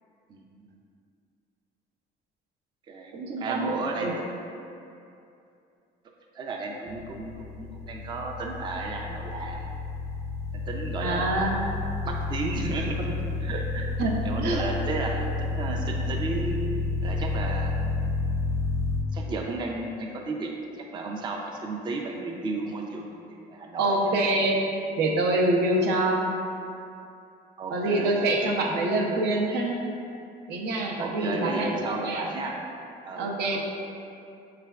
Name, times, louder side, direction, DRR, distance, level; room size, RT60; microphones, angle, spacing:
voice 1, 0.3-0.7 2.9-4.3 6.3-9.7 10.5-11.6 12.1-13.9 14.2-16.6 17.0-18.1 19.1-20.5 20.8-24.1 27.6-28.2 31.0-32.6 33.0-33.6, right 3 dB, 25° right, 1 dB, 0.3 m, -34 dB
voice 2, 3.1-4.1 11.0-11.7 12.0-12.1 14.0-14.6 23.8-24.6 25.0-26.3 27.7-29.8 30.5-32.3 33.2-33.6, right 2 dB, 75° right, 0 dB, 0.6 m, -26 dB
sound 1, 6.9-19.0, left 3 dB, 40° left, 0.4 m, -30 dB
4.8 x 3.3 x 2.3 m, 2.6 s
cardioid pair, 110°, 17 cm